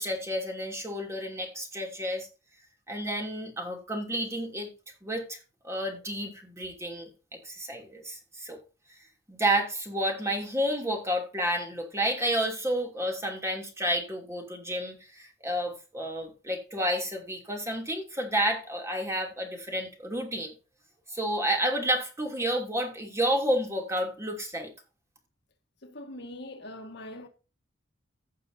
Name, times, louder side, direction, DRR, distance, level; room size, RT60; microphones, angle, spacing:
voice 1, 0.0-2.3 2.9-4.7 5.0-5.4 5.6-8.6 9.3-20.5 21.1-24.7, right 1 dB, 15° right, 2.8 m, -30 dB
voice 2, 25.8-27.3, left 1 dB, 60° left, 1.6 m, -42 dB
16.0 x 6.7 x 2.7 m
head